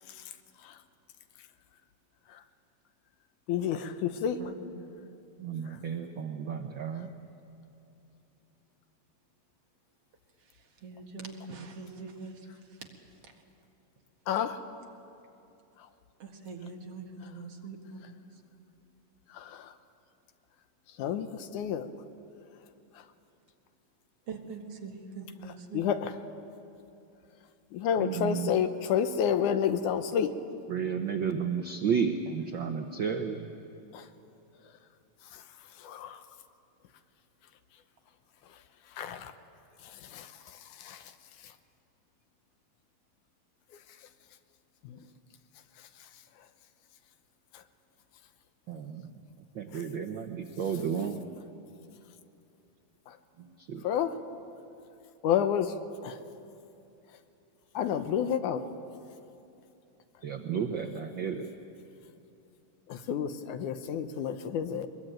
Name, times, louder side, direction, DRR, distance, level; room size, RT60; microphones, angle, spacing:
voice 1, 3.5-4.4 5.7-5.8 14.3-14.6 19.3-19.7 21.0-21.9 25.7-26.1 27.7-30.4 33.9-34.1 35.3-35.4 35.8-36.2 39.0-39.3 39.8-40.3 40.8-41.0 44.8-45.0 53.1-53.2 53.8-54.2 55.2-55.7 56.0-56.2 57.7-58.6 62.9-64.9, left 8 dB, 80° left, 9 dB, 2.4 m, -30 dB
voice 2, 4.4-4.9 10.5-12.9 13.2-13.3 16.2-18.2 24.3-25.9, right 4 dB, 55° right, 2 dB, 2.6 m, -43 dB
voice 3, 5.4-7.1 28.0-28.5 30.7-33.5 48.7-49.0 49.6-51.3 53.7-53.8 60.2-61.4, right 7 dB, 75° right, 5 dB, 1.1 m, -32 dB
23.5 x 21.5 x 9.1 m, 2.8 s
omnidirectional pair, 3.6 m